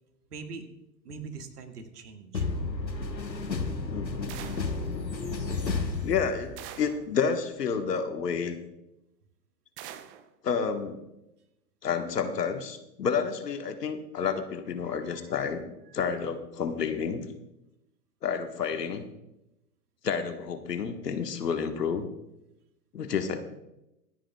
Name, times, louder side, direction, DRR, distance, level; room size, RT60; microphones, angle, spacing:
voice 1, 0.3-0.7 1.0-2.5 14.8-15.2 15.9-16.0, right 4 dB, 65° right, 6 dB, 1.8 m, -43 dB
sound 1, 2.3-6.8, left 3 dB, 85° left, 1.2 m, -32 dB
voice 2, 3.9-4.3 6.0-8.6 10.4-11.0 11.8-15.7 15.9-17.2 18.2-19.1 20.0-22.1 22.9-23.4, left 6 dB, 70° left, 7 dB, 1.4 m, -30 dB
sound 2, 4.3-4.8 6.6-7.1 9.8-10.3, right 11 dB, 25° right, 0.7 m, -44 dB
25.5 x 9.0 x 2.3 m, 0.90 s
figure-of-eight pair, 100°, 49 cm